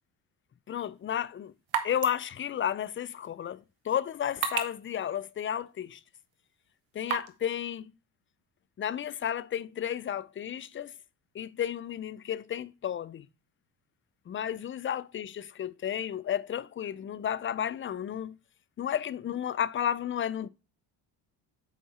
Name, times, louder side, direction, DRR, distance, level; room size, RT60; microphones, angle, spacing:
voice 1, 0.7-1.5 1.8-6.0 6.9-7.9 8.8-10.9 11.3-13.3 14.3-18.4 18.8-20.5, left 9 dB, 30° left, 0.4 m, -32 dB
sound 1, 0.7-7.5, right 9 dB, 75° right, 1.4 m, -39 dB
7.4 x 4.6 x 4.2 m
supercardioid pair, 75°, 46 cm